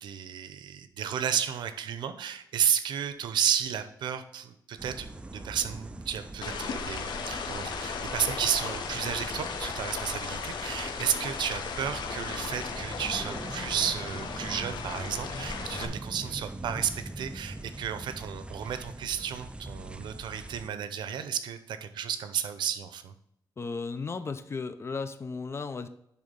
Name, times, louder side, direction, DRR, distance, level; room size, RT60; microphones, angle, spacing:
voice 1, 0.0-23.1, right 8 dB, 85° right, 10 dB, 0.7 m, -32 dB
sound 1, 4.8-20.7, right 2 dB, 15° right, 0.5 m, -42 dB
sound 2, 6.4-15.9, left 6 dB, 75° left, 1.0 m, -36 dB
voice 2, 23.6-25.9, left 4 dB, 35° left, 11 dB, 0.7 m, -35 dB
10.5 x 3.7 x 5.3 m, 0.76 s
cardioid pair, 105°, 8 cm